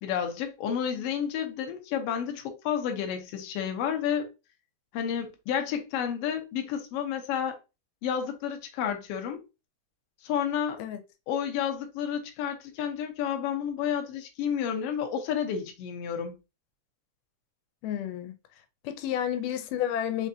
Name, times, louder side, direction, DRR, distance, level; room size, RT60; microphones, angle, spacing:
voice 1, 0.0-4.3 4.9-7.6 8.0-9.4 10.2-10.8 11.3-16.3, left 8 dB, 70° left, 1.5 m, -30 dB
voice 2, 17.8-18.4 18.8-20.3, left 10 dB, 85° left, 2.3 m, -30 dB
5.2 x 3.5 x 2.7 m
omnidirectional pair, 3.7 m